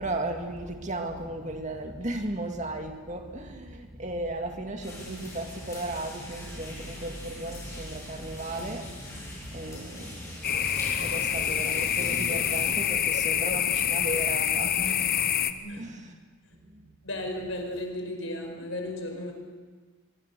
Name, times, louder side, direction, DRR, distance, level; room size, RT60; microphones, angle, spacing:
voice 1, 0.0-16.1 16.6-16.9, right 1 dB, 35° right, 4 dB, 2.3 m, -36 dB
sound 1, 4.8-12.7, left 1 dB, 15° left, 7.7 m, -42 dB
sound 2, 10.4-15.5, left 9 dB, 45° left, 1.0 m, -26 dB
voice 2, 17.0-19.3, left 1 dB, 70° left, 3 dB, 5.1 m, -34 dB
24.5 x 23.5 x 6.9 m, 1.4 s
head